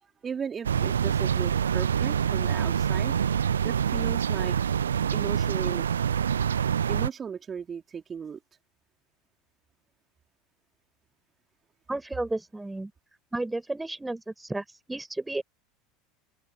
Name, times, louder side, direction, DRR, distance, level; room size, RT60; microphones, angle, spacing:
voice 1, 0.0-3.1 3.6-4.6 5.1-5.9 6.9-8.4, right 7 dB, 25° right, 3.5 m, -36 dB
sound 1, 0.6-7.1, right 8 dB, 75° right, 0.3 m, -26 dB
voice 2, 11.9-12.9 13.3-15.4, right 2 dB, 10° right, 4.9 m, -32 dB
figure-of-eight pair, 75°, 0 cm